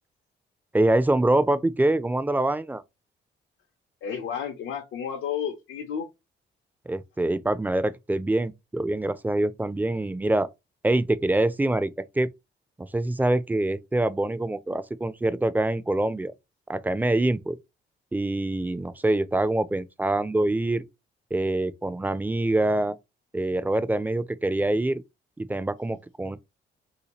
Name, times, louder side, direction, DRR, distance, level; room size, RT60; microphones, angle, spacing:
voice 1, 0.7-2.8 6.9-10.5 10.8-12.3 12.8-16.3 16.7-17.6 18.1-20.8 21.3-23.0 23.3-25.0 25.4-26.4, right 1 dB, 10° right, 0.3 m, -25 dB
voice 2, 4.0-6.1, left 8 dB, 85° left, 0.7 m, -31 dB
3.4 x 2.8 x 2.9 m
cardioid pair, 90°, 20 cm